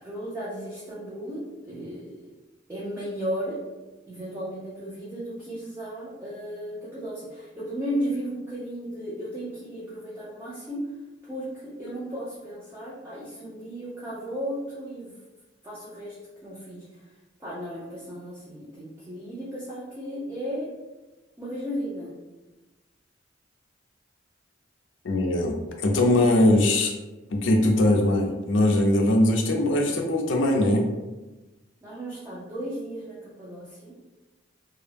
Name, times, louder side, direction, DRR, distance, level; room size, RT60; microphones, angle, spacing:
voice 1, 0.0-2.3 2.7-3.6 4.1-10.8 11.2-15.1 15.6-16.2 16.4-17.0 17.4-20.7 21.4-22.2 31.8-34.1, equal, 15° right, -8 dB, 0.5 m, -35 dB
voice 2, 25.0-26.9 27.3-30.8, left 1 dB, 75° left, 2 dB, 0.4 m, -21 dB
2.3 x 2.0 x 3.2 m, 1.1 s
head